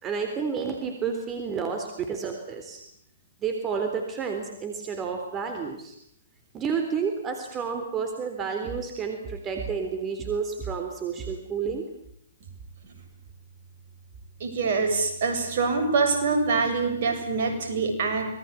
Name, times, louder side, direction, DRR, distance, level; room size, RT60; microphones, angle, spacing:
voice 1, 0.0-2.8 3.4-5.9 6.5-11.9, right 6 dB, 25° right, 5 dB, 3.6 m, -30 dB
voice 2, 14.4-18.2, right 4 dB, 55° right, 5 dB, 7.5 m, -25 dB
26.0 x 20.5 x 8.4 m, 0.70 s
figure-of-eight pair, 120°, 0 cm